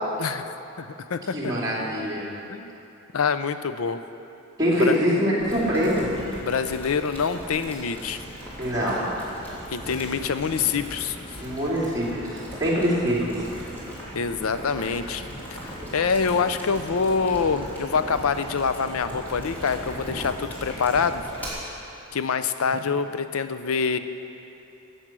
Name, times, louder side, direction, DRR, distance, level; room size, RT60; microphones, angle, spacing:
voice 1, 0.2-1.5 2.5-2.8 3.1-4.0 4.8-5.0 6.4-8.2 9.7-11.2 14.1-15.2 15.6-21.2 22.1-24.0, left 5 dB, 90° left, 11 dB, 0.5 m, -26 dB
voice 2, 1.3-2.2 4.6-6.1 8.6-9.0 11.4-13.3, equal, 15° right, -8 dB, 2.8 m, -24 dB
Boiling, 5.4-21.5, equal, 10° left, 2.9 m, -38 dB
13.5 x 8.0 x 6.1 m, 2.8 s
head